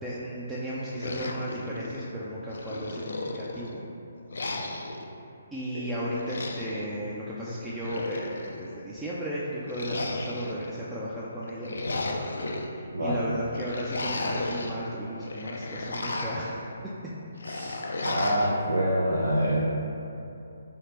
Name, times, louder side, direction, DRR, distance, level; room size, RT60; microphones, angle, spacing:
voice 1, 0.0-3.8 5.5-11.8 12.7-16.9, equal, 10° right, -8 dB, 0.3 m, -35 dB
sound 1, 1.0-2.1 2.5-3.7 4.3-5.0 6.1-6.9 7.6-8.6 9.7-10.7 11.4-12.7 13.5-14.8 15.2-16.5 17.4-18.5, left 2 dB, 70° left, 0.3 m, -34 dB
voice 2, 17.4-19.8, equal, 85° right, -4 dB, 0.4 m, -26 dB
3.3 x 3.1 x 2.9 m, 2.8 s
figure-of-eight pair, 140°, 0 cm